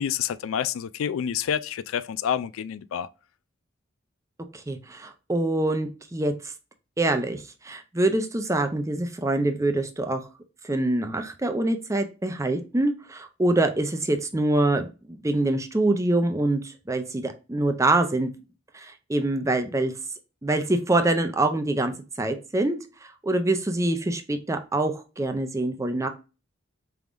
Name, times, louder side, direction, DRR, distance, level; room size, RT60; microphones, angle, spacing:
voice 1, 0.0-3.1, left 9 dB, 90° left, 0.3 m, -28 dB
voice 2, 4.5-6.3 7.0-10.2 10.6-18.3 18.7-19.9 20.4-22.8 23.2-26.1, right 2 dB, 15° right, 0.5 m, -25 dB
4.6 x 3.5 x 2.5 m
head